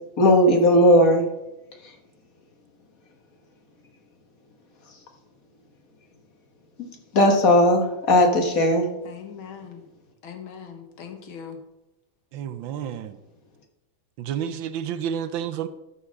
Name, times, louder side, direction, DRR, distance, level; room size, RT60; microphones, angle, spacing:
voice 1, 0.2-1.2 7.1-8.9, left 1 dB, 45° left, 3 dB, 1.7 m, -17 dB
voice 2, 9.1-9.8 10.2-11.6, left 7 dB, 85° left, 5 dB, 2.1 m, -40 dB
voice 3, 12.3-13.2 14.2-15.7, right 9 dB, 75° right, 11 dB, 1.4 m, -30 dB
12.5 x 4.8 x 6.3 m, 0.95 s
omnidirectional pair, 2.2 m